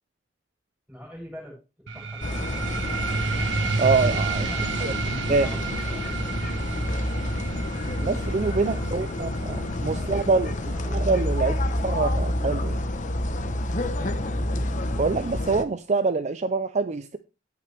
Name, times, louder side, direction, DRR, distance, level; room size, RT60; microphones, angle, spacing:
voice 1, 0.9-1.6 1.9-2.9 4.5-6.5 8.6-12.1 14.0-14.2, equal, 5° right, 7.4 m, -44 dB
sound 1, 1.9-12.9, right 4 dB, 80° right, 1.2 m, -31 dB
sound 2, 2.2-15.6, left 1 dB, 45° left, 0.9 m, -28 dB
voice 2, 3.8-4.5 4.8-4.9 5.3-5.5 8.0-9.3 9.8-10.5 10.9-11.5 11.8-12.8 15.0-17.2, right 4 dB, 40° right, 0.5 m, -24 dB
17.0 x 5.9 x 3.4 m
head